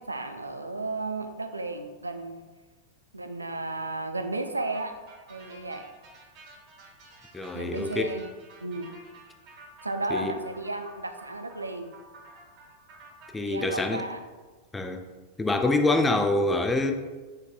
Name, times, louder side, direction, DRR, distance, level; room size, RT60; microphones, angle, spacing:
voice 1, 0.0-2.5 3.1-4.9 5.3-5.9 7.5-8.3 8.6-8.9 9.8-11.9 13.4-14.2, right 2 dB, 80° right, 7 dB, 0.3 m, -33 dB
sound 1, 4.7-13.3, right 2 dB, 45° right, 1.5 m, -51 dB
voice 2, 7.3-8.2 10.1-10.3 13.3-14.0 14.7-15.0 15.4-16.9, left 2 dB, 10° left, 6 dB, 0.4 m, -25 dB
4.7 x 4.7 x 2.3 m, 1.3 s
figure-of-eight pair, 90°, 0 cm